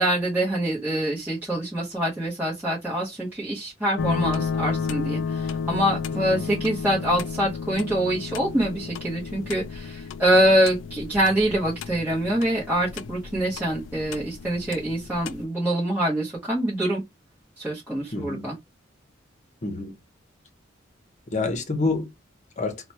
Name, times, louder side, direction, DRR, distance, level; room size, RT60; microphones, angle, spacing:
voice 1, 0.0-17.0 17.6-18.6, right 1 dB, 10° right, 0.9 m, -25 dB
sound 1, 4.0-15.4, left 5 dB, 70° left, 0.3 m, -32 dB
voice 2, 6.1-6.4 18.1-18.5 19.6-20.0 21.3-22.1 22.6-22.8, left 3 dB, 40° left, 0.8 m, -27 dB
2.9 x 2.2 x 4.1 m
head